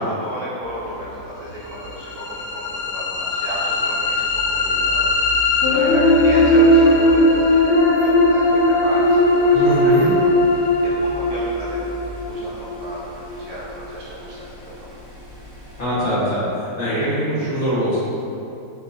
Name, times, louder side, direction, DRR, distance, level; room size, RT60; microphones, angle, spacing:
voice 1, 0.0-14.8, right 1 dB, 45° right, -8 dB, 1.4 m, -33 dB
sound 1, 0.6-15.8, equal, 25° right, 1.0 m, -37 dB
sound 2, 1.8-13.8, left 1 dB, 80° left, 1.2 m, -18 dB
voice 2, 9.5-10.1 15.8-16.4 16.8-18.0, right 1 dB, 45° left, -14 dB, 1.4 m, -22 dB
6.8 x 2.9 x 2.6 m, 2.7 s
omnidirectional pair, 1.9 m